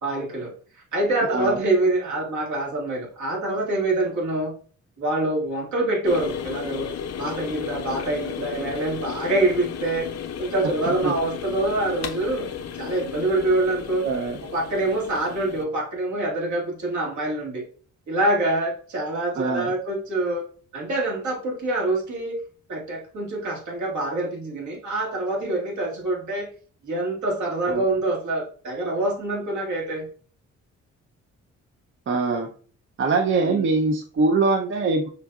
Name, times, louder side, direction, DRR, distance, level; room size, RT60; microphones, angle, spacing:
voice 1, 0.0-4.5 5.0-6.9 7.2-10.1 10.4-12.5 12.7-14.1 14.4-17.6 18.1-20.5 20.7-22.4 22.7-26.5 26.8-30.1 33.4-33.6, right 2 dB, 75° right, -2 dB, 1.9 m, -25 dB
sound 1, 6.0-15.6, left 8 dB, 60° left, 0.6 m, -34 dB
voice 2, 14.0-14.4 19.4-19.7 27.7-27.8 32.1-32.5 33.0-35.1, right 3 dB, 45° right, 4 dB, 0.5 m, -23 dB
5.7 x 2.7 x 2.3 m, 0.43 s
cardioid pair, 75°, 30 cm